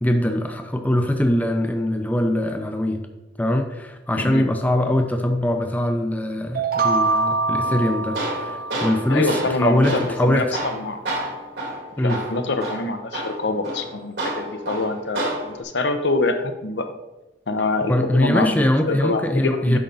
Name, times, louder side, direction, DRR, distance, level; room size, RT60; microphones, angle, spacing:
voice 1, 0.0-3.0 3.4-9.3 9.6-10.5 12.0-12.2 17.9-19.8, left 1 dB, 10° left, 5 dB, 0.5 m, -22 dB
voice 2, 4.1-4.5 9.1-11.0 12.0-16.9 17.5-19.8, left 2 dB, 75° left, 7 dB, 0.8 m, -25 dB
sound 1, 6.5-9.3, right 3 dB, 55° right, 0.5 m, -24 dB
Tools, 7.6-15.6, right 1 dB, 75° right, 2.2 m, -30 dB
8.7 x 5.8 x 4.0 m, 0.99 s
head